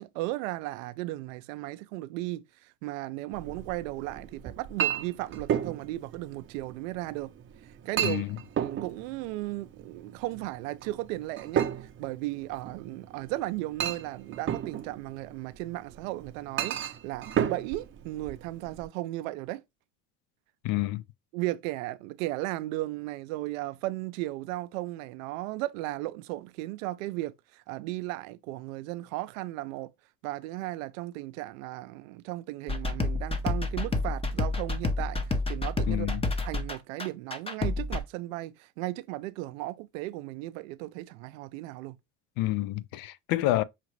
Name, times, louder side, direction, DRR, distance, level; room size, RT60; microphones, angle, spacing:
voice 1, 0.0-7.3 7.6-8.2 8.6-19.6 21.3-29.9 30.2-36.2 36.4-42.0, right 18 dB, 80° right, 0.6 m, -35 dB
Chink clink, 3.3-18.9, right 9 dB, 30° right, 0.6 m, -34 dB
voice 2, 20.6-21.0 35.9-36.2 42.4-43.6, left 16 dB, 60° left, 0.5 m, -28 dB
sound 1, 32.7-38.0, left 2 dB, 15° left, 0.7 m, -29 dB
5.8 x 2.5 x 3.1 m
supercardioid pair, 95°, 39 cm